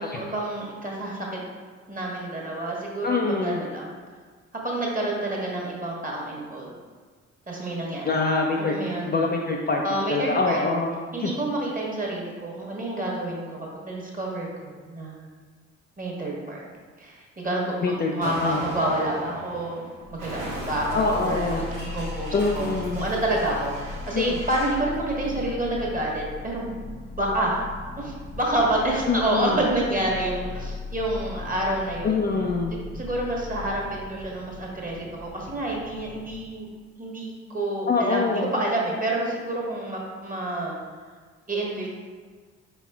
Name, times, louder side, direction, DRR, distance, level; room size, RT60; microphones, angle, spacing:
voice 1, 0.0-1.4 1.9-3.9 4.6-6.7 7.5-8.1 8.6-9.1 9.8-10.6 11.1-15.2 16.0-16.6 17.0-26.7 27.1-27.6 28.0-32.2 32.9-36.7 37.0-40.8 41.5-41.9, right 1 dB, 25° right, -2 dB, 1.3 m, -28 dB
voice 2, 3.0-3.6 8.0-8.7 9.0-10.9 11.2-11.3 17.8-18.6 20.9-21.8 22.3-23.0 24.1-24.3 29.1-29.6 32.0-32.7 37.9-38.5, left 3 dB, 25° left, 0 dB, 0.4 m, -25 dB
Explosion, 18.2-24.9, right 1 dB, 85° right, 0.9 m, -39 dB
sound 1, 20.0-36.6, left 3 dB, 85° left, 0.8 m, -38 dB
4.6 x 4.3 x 2.3 m, 1.5 s
figure-of-eight pair, 40°, 36 cm